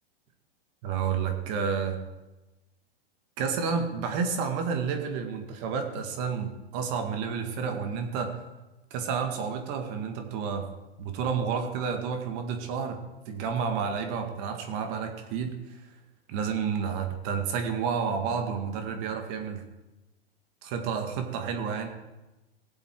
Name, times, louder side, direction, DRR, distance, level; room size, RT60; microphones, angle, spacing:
voice 1, 0.8-2.0 3.4-8.4 8.9-10.7 11.0-13.0 13.3-15.8 16.3-19.6 20.6-21.9, right 6 dB, 40° right, 5 dB, 2.0 m, -30 dB
18.5 x 7.8 x 4.8 m, 1.1 s
hypercardioid pair, 140°, 31 cm